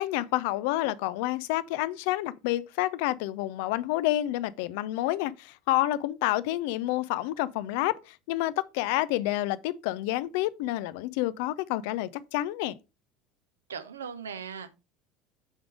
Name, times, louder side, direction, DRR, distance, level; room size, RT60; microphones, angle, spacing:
voice 1, 0.0-12.8, left 15 dB, 60° left, 0.5 m, -29 dB
voice 2, 13.7-14.7, right 6 dB, 75° right, 0.9 m, -38 dB
7.4 x 4.7 x 4.8 m
figure-of-eight pair, 70°, 0 cm